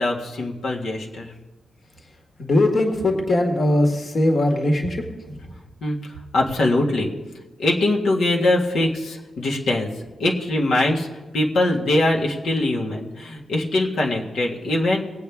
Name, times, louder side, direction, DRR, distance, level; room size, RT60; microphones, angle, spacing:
voice 1, 0.0-1.3 5.8-7.1 7.6-9.9 10.2-15.0, left 1 dB, 80° left, -2 dB, 1.8 m, -22 dB
voice 2, 2.4-5.3, left 1 dB, 45° left, 2 dB, 1.7 m, -20 dB
20.0 x 8.5 x 3.6 m, 1.1 s
wide cardioid pair, 120°, 0 cm